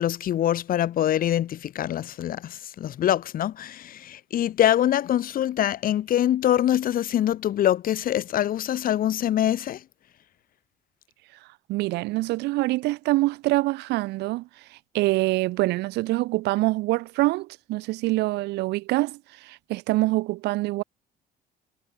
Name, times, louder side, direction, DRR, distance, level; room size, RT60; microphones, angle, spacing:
voice 1, 0.0-9.8, left 11 dB, 55° left, 1.6 m, -24 dB
voice 2, 11.7-20.8, right 20 dB, 85° right, 1.3 m, -25 dB
cardioid pair, 110°, 17 cm